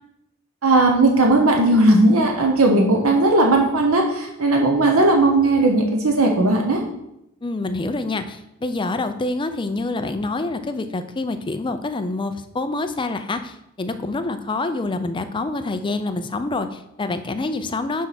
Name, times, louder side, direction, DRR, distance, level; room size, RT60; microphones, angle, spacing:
voice 1, 0.6-6.8, right 2 dB, 90° right, 2 dB, 1.0 m, -17 dB
voice 2, 7.4-18.1, left 2 dB, 25° left, 9 dB, 0.5 m, -26 dB
6.4 x 4.6 x 5.8 m, 0.84 s
head